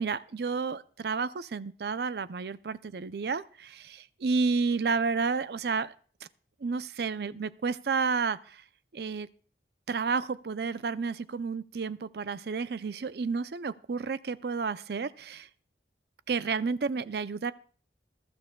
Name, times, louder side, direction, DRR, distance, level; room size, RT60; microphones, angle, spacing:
voice 1, 0.0-5.9 6.6-8.6 8.9-9.3 9.9-15.5 16.3-17.5, right 5 dB, 60° right, 15 dB, 0.5 m, -31 dB
21.5 x 12.0 x 2.2 m, 0.41 s
head